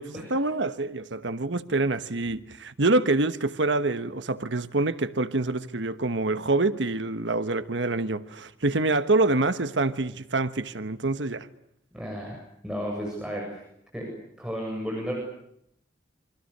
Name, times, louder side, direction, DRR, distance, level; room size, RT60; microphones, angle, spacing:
voice 1, 0.0-11.5, right 2 dB, 85° right, 1.2 m, -26 dB
voice 2, 11.9-12.4 12.6-13.6 13.9-14.1 14.4-15.1, equal, 5° right, 7.6 m, -33 dB
29.5 x 25.5 x 6.7 m
head